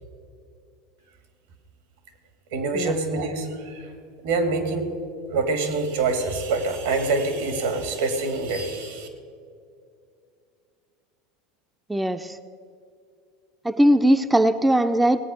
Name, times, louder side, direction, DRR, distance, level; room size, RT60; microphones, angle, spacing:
voice 1, 2.5-3.9 4.2-4.9 5.3-9.1, right 3 dB, 80° right, 7 dB, 2.3 m, -25 dB
voice 2, 11.9-12.4 13.6-15.2, right 1 dB, 10° right, 8 dB, 0.5 m, -20 dB
18.0 x 8.6 x 6.5 m, 2.4 s
hypercardioid pair, 100°, 0 cm